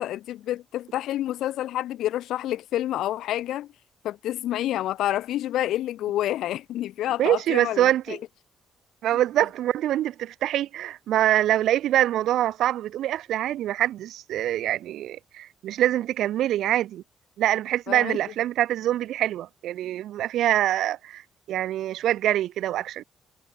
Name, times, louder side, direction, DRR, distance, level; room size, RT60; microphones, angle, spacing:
voice 1, 0.0-3.7 4.0-8.2 17.9-18.2, left 13 dB, 80° left, 0.5 m, -28 dB
voice 2, 7.2-8.2 9.0-17.0 17.4-21.2 21.5-23.0, right 12 dB, 80° right, 1.3 m, -24 dB
cardioid pair, 90°, 0 cm